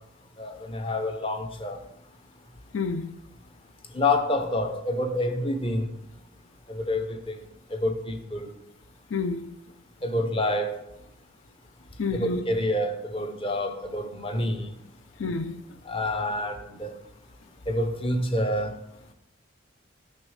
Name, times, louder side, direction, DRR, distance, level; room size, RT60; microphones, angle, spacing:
voice 1, 0.4-1.8 4.0-5.9 6.7-7.0 7.8-8.4 10.0-10.8 12.1-14.7 15.9-16.9 17.7-18.7, left 1 dB, 25° left, 0.7 m, -27 dB
voice 2, 2.7-3.1 9.1-9.5 12.0-12.4 15.2-15.6, left 4 dB, 70° left, 0.5 m, -28 dB
6.5 x 6.3 x 4.9 m
head